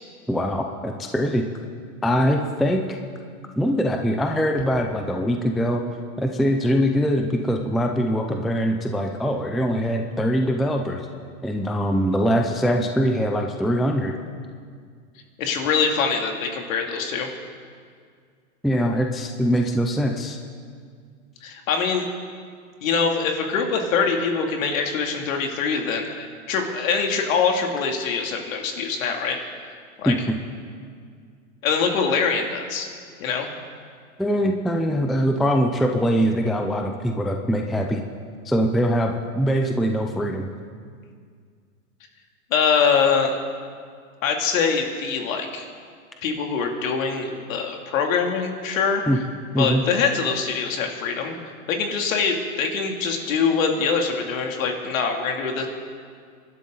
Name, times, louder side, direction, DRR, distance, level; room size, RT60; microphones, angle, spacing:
voice 1, 0.3-1.4 2.0-3.0 3.6-5.8 6.2-11.1 11.4-14.1 18.6-20.4 30.1-30.4 34.2-38.0 38.5-40.5 49.1-49.2 49.5-49.8, equal, ahead, 3 dB, 0.4 m, -22 dB
voice 2, 15.4-17.3 21.4-22.0 22.8-29.4 30.0-30.1 31.6-32.9 33.2-33.5 42.5-43.4 44.2-45.7 46.2-49.0 49.6-51.3 51.7-55.7, left 5 dB, 65° left, 2 dB, 2.8 m, -23 dB
27.5 x 12.0 x 3.9 m, 2.1 s
hypercardioid pair, 125°, 43 cm